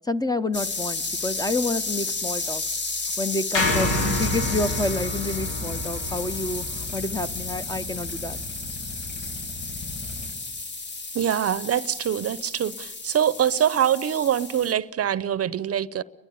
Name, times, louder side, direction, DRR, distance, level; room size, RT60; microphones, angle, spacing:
voice 1, 0.1-2.6 3.2-6.6 6.9-8.4, left 2 dB, 10° left, 0.8 m, -28 dB
sound 1, 0.5-14.7, left 3 dB, 35° left, 2.0 m, -32 dB
sound 2, 3.5-7.8, left 1 dB, 85° left, 3.4 m, -28 dB
sound 3, 5.2-10.3, left 2 dB, 65° left, 5.0 m, -39 dB
voice 2, 11.1-16.0, right 9 dB, 50° right, 0.7 m, -24 dB
30.0 x 11.5 x 9.9 m
cardioid pair, 90°, 30 cm